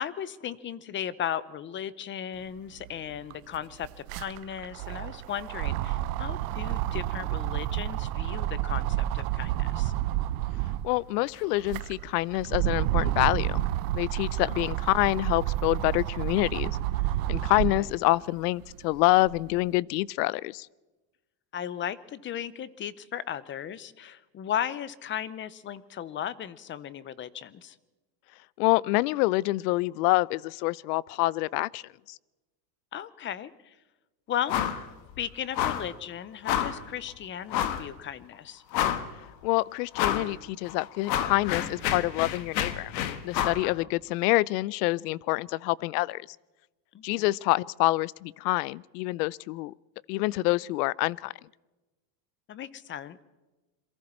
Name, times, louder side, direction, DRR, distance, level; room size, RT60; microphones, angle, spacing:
voice 1, 0.0-9.9 14.4-14.7 17.8-17.9 21.5-27.8 32.9-33.7 34.3-34.6 35.2-38.6 43.6-43.9 46.9-47.2 52.5-53.2, left 10 dB, 25° left, 18 dB, 0.7 m, -36 dB
sound 1, 2.8-2.9 3.1-10.9 11.4-17.9 18.4-19.6, right 15 dB, 65° right, 1.0 m, -30 dB
voice 2, 10.8-16.8 17.3-20.7 28.6-31.8 32.1-32.2 39.4-42.9 43.2-46.3 47.0-49.7 50.1-51.3, left 20 dB, 70° left, 25 dB, 0.6 m, -26 dB
sound 2, 34.5-34.8 35.1-35.2 35.5-35.9 36.5-36.8 37.5-37.9 38.3-38.4 38.7-39.2 39.9-40.3 40.7-43.6, left 10 dB, 85° left, 1.8 m, -29 dB
28.0 x 23.0 x 4.4 m, 1.1 s
supercardioid pair, 140°, 50 cm